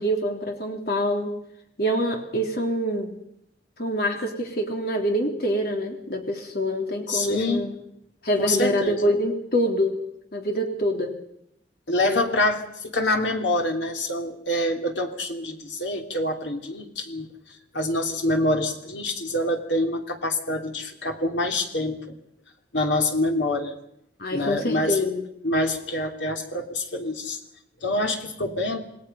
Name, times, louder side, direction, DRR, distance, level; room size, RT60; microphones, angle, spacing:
voice 1, 0.0-1.4 1.8-3.2 3.8-7.7 8.2-10.0 10.3-11.2 12.0-12.2 24.2-25.3, equal, 55° left, 3 dB, 3.5 m, -25 dB
voice 2, 7.1-7.7 8.4-9.1 11.9-22.2 22.7-23.7 24.3-25.0 25.4-27.4 27.8-28.8, left 1 dB, 85° left, 3 dB, 3.1 m, -26 dB
28.0 x 20.0 x 5.6 m, 0.75 s
head